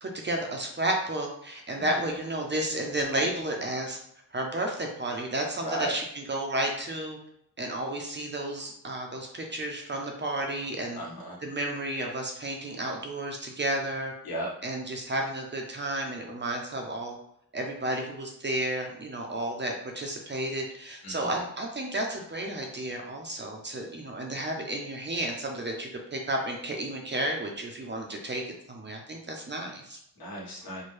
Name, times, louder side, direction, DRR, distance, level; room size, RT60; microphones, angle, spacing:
voice 1, 0.0-4.0 4.3-7.2 7.6-11.0 11.4-14.1 14.6-17.2 17.5-28.4 28.7-30.0, right 1 dB, 30° right, 1 dB, 0.5 m, -32 dB
voice 2, 5.6-6.0 10.9-11.4 14.2-14.5 21.0-21.4 30.2-30.8, right 1 dB, 70° left, -4 dB, 1.3 m, -35 dB
4.3 x 2.2 x 3.1 m, 0.74 s
wide cardioid pair, 160°, 37 cm